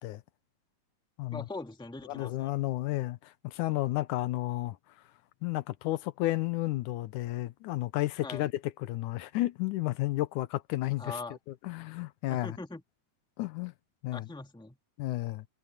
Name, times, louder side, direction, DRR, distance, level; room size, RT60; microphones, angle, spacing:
voice 1, 1.3-2.5 8.2-8.5 11.0-11.4 12.3-12.8 14.1-14.8, left 3 dB, ahead, 1.5 m, -41 dB
voice 2, 2.1-4.8 5.4-11.2 11.6-12.6 13.4-13.7 14.0-14.3 15.0-15.5, left 17 dB, 90° left, 2.3 m, -32 dB
omnidirectional pair, 3.5 m